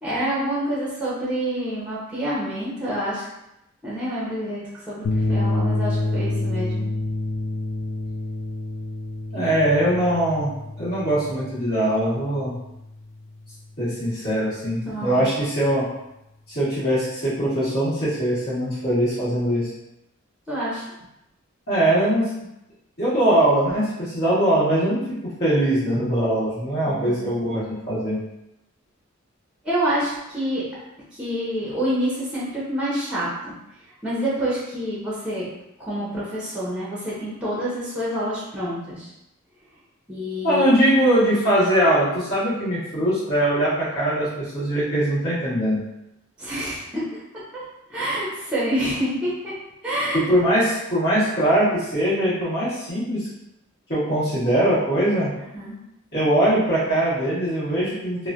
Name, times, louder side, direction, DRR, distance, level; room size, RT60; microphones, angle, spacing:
voice 1, 0.0-3.3 3.8-6.9 9.3-9.5 14.9-15.2 20.5-20.8 26.9-27.2 29.6-30.6 31.1-33.5 34.0-35.5 35.8-39.1 40.1-40.7 46.4-47.2 47.5-47.6 47.9-49.5 49.8-50.2 55.5-55.8, equal, 5° right, -8 dB, 0.6 m, -27 dB
sound 1, 5.0-13.5, left 2 dB, 65° left, 0.3 m, -28 dB
voice 2, 9.3-10.5 10.8-12.5 13.8-15.8 16.5-19.7 21.7-22.3 23.0-25.0 25.4-28.2 40.4-44.3 44.5-45.8 50.3-53.3 53.9-55.3 56.1-58.3, right 1 dB, 50° left, -14 dB, 1.1 m, -21 dB
3.1 x 2.1 x 2.4 m, 0.87 s
head